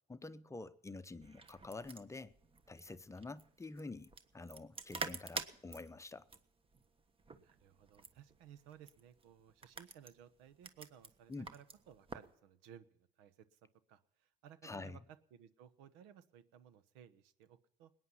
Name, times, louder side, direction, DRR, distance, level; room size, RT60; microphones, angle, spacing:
voice 1, 0.1-2.3 2.7-6.3 11.3-11.5 14.6-15.0, left 3 dB, 15° left, 0.7 m, -48 dB
sound 1, 1.2-12.3, right 4 dB, 30° right, 1.3 m, -49 dB
voice 2, 7.4-13.6 13.9-15.0 15.3-17.9, right 9 dB, 85° right, 1.1 m, -59 dB
20.0 x 9.5 x 5.6 m
supercardioid pair, 95°, 19 cm